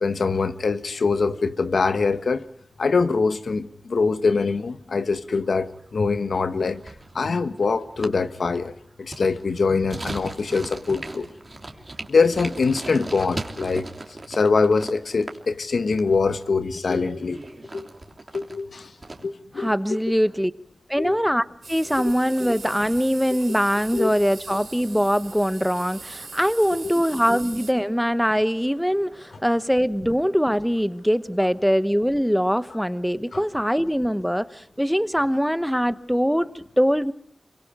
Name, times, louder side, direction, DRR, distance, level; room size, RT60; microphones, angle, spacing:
voice 1, 0.0-2.4 2.8-6.8 7.1-11.3 12.1-13.9 14.3-17.4 17.7-17.9 18.3-18.9 19.2-19.7 21.0-21.2 23.9-24.1 33.3-33.4, left 4 dB, 80° left, 1.2 m, -23 dB
sound 1, 5.2-5.8 6.1-6.2 6.4-19.3, right 2 dB, 40° right, 3.2 m, -38 dB
voice 2, 19.6-20.5 20.9-37.1, equal, ahead, 1.0 m, -22 dB
sound 2, 21.6-27.7, right 4 dB, 90° right, 3.5 m, -41 dB
26.0 x 24.5 x 5.0 m
cardioid pair, 55°, 0 cm